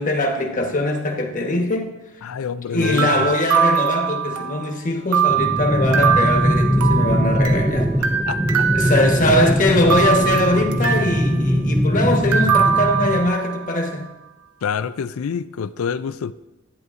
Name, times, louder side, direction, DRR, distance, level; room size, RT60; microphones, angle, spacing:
voice 1, 0.0-1.9 2.7-7.9 8.7-14.1, left 1 dB, 40° left, 1.1 m, -21 dB
voice 2, 2.2-3.3 8.3-8.9 14.6-16.3, left 6 dB, 70° left, 0.4 m, -27 dB
sound 1, 2.8-4.7 5.1-7.7 8.0-9.5 9.9-11.3 12.3-13.7, right 8 dB, 85° right, 0.8 m, -22 dB
sound 2, 5.3-13.3, equal, 5° right, 0.4 m, -21 dB
11.0 x 9.4 x 2.5 m
head